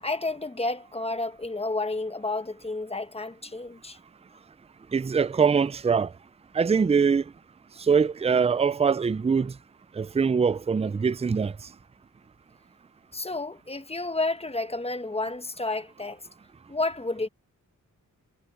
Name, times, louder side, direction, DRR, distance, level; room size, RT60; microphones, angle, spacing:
voice 1, 0.0-4.0 13.1-16.2 16.7-17.3, left 2 dB, 20° left, 1.2 m, -31 dB
voice 2, 4.9-6.1 6.5-7.2 7.8-9.5 9.9-11.5, right 5 dB, 20° right, 0.5 m, -23 dB
cardioid pair, 85°, 32 cm